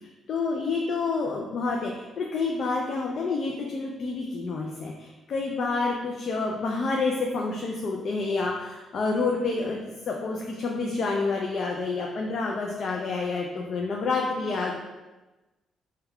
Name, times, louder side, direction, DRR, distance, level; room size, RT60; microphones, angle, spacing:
voice 1, 0.3-14.8, left 3 dB, 60° left, -1 dB, 0.4 m, -28 dB
3.4 x 2.2 x 3.4 m, 1.1 s
cardioid pair, 90°, 0 cm